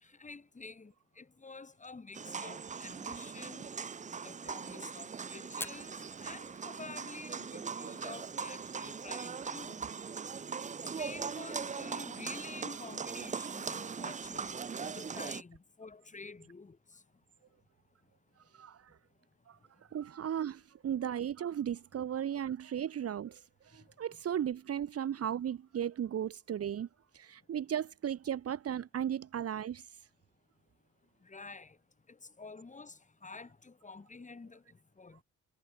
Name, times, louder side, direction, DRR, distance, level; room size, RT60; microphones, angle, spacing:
voice 1, 0.0-3.7 4.2-9.9 11.0-16.8 31.2-31.8 32.1-34.6 35.0-35.2, left 4 dB, 25° left, 4.2 m, -49 dB
sound 1, 2.1-15.4, right 6 dB, 25° right, 0.6 m, -40 dB
Fire, 5.5-14.7, left 1 dB, 5° left, 1.6 m, -54 dB
voice 2, 18.5-19.0 19.5-19.6 19.9-26.9 27.1-29.9, right 9 dB, 50° right, 1.3 m, -36 dB
cardioid pair, 90°, 30 cm